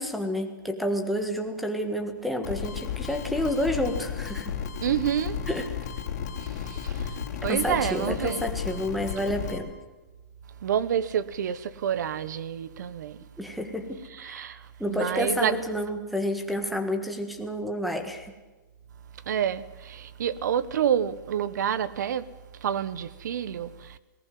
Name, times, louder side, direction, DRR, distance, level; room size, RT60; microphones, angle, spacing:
voice 1, 0.0-4.5 5.5-5.6 7.5-9.7 13.4-14.5 14.8-18.3, equal, ahead, 1.6 m, -29 dB
sound 1, 2.4-9.6, left 8 dB, 55° left, 3.3 m, -34 dB
voice 2, 4.8-5.4 6.4-8.4 10.6-13.2 14.1-15.6 19.2-22.3 22.6-24.0, right 9 dB, 65° right, 1.2 m, -28 dB
20.5 x 18.5 x 7.7 m
hypercardioid pair, 175°, 11 cm